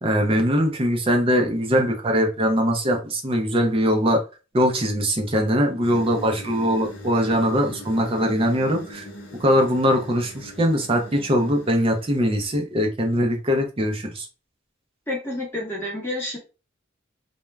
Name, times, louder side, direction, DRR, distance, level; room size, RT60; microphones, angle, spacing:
voice 1, 0.0-4.2 4.5-9.1 9.4-14.3, equal, 25° right, 0.5 m, -21 dB
sound 1, 5.8-12.5, left 1 dB, 60° left, 0.6 m, -41 dB
voice 2, 15.1-16.4, left 1 dB, 10° left, 0.8 m, -29 dB
2.3 x 2.1 x 3.1 m
head